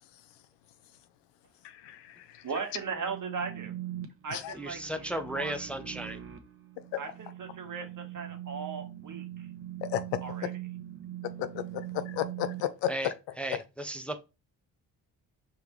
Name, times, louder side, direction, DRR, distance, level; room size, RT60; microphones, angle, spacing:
voice 1, 1.6-2.4 4.3-4.5 9.8-10.2 11.4-12.9, left 12 dB, 85° left, 0.6 m, -33 dB
voice 2, 2.4-3.7 4.2-5.6 7.0-9.5 10.2-10.5, right 5 dB, 50° right, 1.4 m, -38 dB
sound 1, 3.0-12.6, right 13 dB, 30° right, 0.9 m, -42 dB
voice 3, 4.5-6.2 12.9-13.1 13.4-14.2, right 1 dB, 5° left, 0.6 m, -35 dB
4.9 x 3.4 x 3.1 m
supercardioid pair, 65°, 41 cm